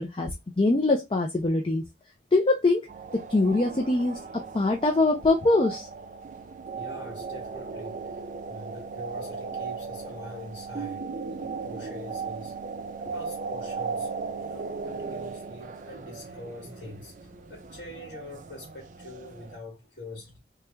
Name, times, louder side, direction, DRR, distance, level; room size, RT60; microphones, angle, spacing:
voice 1, 0.0-1.8 2.3-2.9 3.1-5.9, left 2 dB, 30° left, 0.4 m, -23 dB
sound 1, 2.9-19.6, right 4 dB, 45° right, 0.4 m, -37 dB
voice 2, 6.7-8.0 8.5-11.1 11.4-12.5 13.0-14.1 14.4-17.2 17.5-20.4, left 1 dB, 60° left, 1.6 m, -44 dB
3.1 x 2.2 x 3.4 m
head